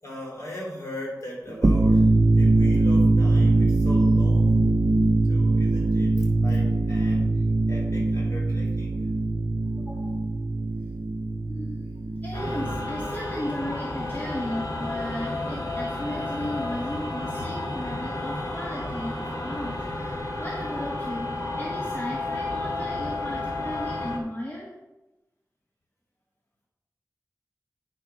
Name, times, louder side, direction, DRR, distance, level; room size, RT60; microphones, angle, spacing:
voice 1, 0.0-4.6 5.3-9.1 9.7-9.8, left 1 dB, 50° left, -3 dB, 3.5 m, -39 dB
sound 1, 1.5-13.1, right 2 dB, 40° right, 0.4 m, -22 dB
voice 2, 9.8-10.2 11.5-11.9 12.2-24.7, left 1 dB, 30° left, -4 dB, 1.5 m, -35 dB
sound 2, 12.3-24.2, left 2 dB, 70° left, 1.6 m, -31 dB
8.9 x 4.6 x 5.8 m, 1.0 s
wide cardioid pair, 70°, 6 cm